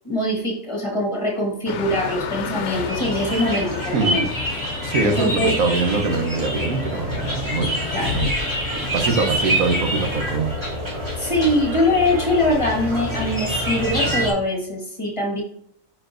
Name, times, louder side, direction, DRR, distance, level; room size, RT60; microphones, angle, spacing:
voice 1, 0.0-4.3 5.0-5.5 7.9-8.2 9.2-9.3 11.2-15.4, left 1 dB, 25° left, -1 dB, 1.1 m, -23 dB
sound 1, 1.7-10.4, left 7 dB, 65° left, 0.8 m, -32 dB
sound 2, 2.7-14.3, equal, 20° right, 2.5 m, -26 dB
voice 2, 3.9-4.3 4.8-7.8 8.1-8.3 8.7-10.5, right 4 dB, 85° right, 5 dB, 1.3 m, -23 dB
9.2 x 4.4 x 2.5 m, 0.65 s
omnidirectional pair, 1.4 m